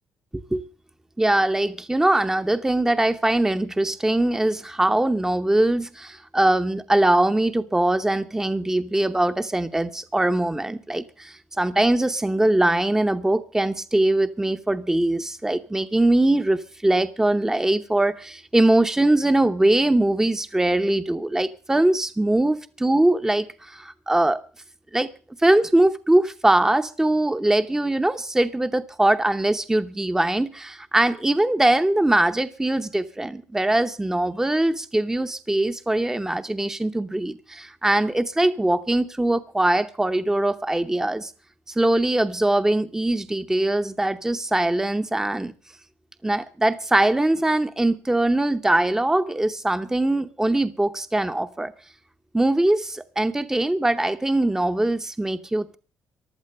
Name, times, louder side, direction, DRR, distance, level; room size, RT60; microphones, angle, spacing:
voice 1, 0.3-0.6 1.2-24.4 24.9-25.1 25.4-41.3 41.7-45.5 46.2-51.7 52.3-55.8, right 1 dB, 10° right, 0.8 m, -22 dB
15.0 x 11.5 x 6.6 m
cardioid pair, 95°, 6 cm